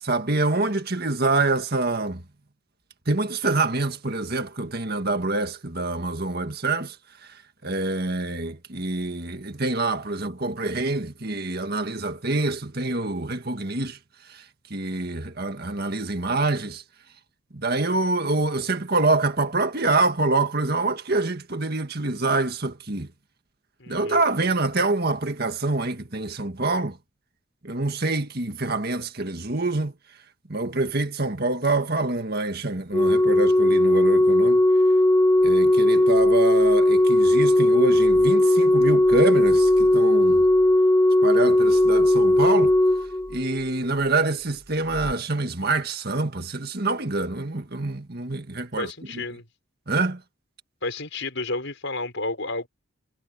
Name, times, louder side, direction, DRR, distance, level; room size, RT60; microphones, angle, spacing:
voice 1, 0.0-2.2 3.1-7.0 7.2-14.0 14.3-14.4 14.7-16.8 17.5-23.1 23.9-27.0 27.6-29.9 30.5-34.6 35.4-40.4 41.2-42.8 43.3-49.2 49.9-50.2, right 2 dB, 45° right, 1.9 m, -26 dB
voice 2, 23.8-24.2 48.8-49.5 50.8-52.7, left 2 dB, 60° left, 6.3 m, -31 dB
Organ, 32.9-43.8 44.9-45.1, left 1 dB, 15° left, 2.1 m, -18 dB
head